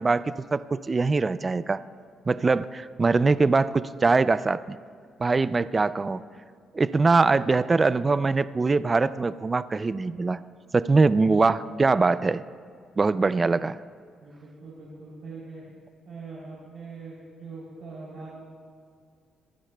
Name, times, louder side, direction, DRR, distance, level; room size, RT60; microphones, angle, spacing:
voice 1, 0.0-1.8 2.3-4.6 5.2-6.2 6.7-10.4 10.7-12.4 13.0-13.8, right 3 dB, 30° right, 15 dB, 0.3 m, -22 dB
voice 2, 14.2-15.6 16.0-18.3, right 4 dB, 60° right, -6 dB, 3.1 m, -42 dB
21.5 x 15.0 x 2.2 m, 2.2 s
cardioid pair, 90°, 0 cm